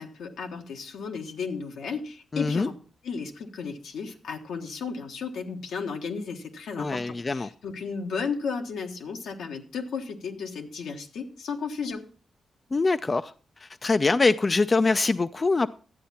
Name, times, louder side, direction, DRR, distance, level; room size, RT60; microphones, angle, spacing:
voice 1, 0.0-2.7 3.0-12.0, left 5 dB, 90° left, 1.4 m, -34 dB
voice 2, 2.3-2.7 6.8-7.5 12.7-13.3 13.6-15.7, left 3 dB, 35° left, 0.4 m, -24 dB
11.5 x 8.2 x 4.3 m
cardioid pair, 60°, 0 cm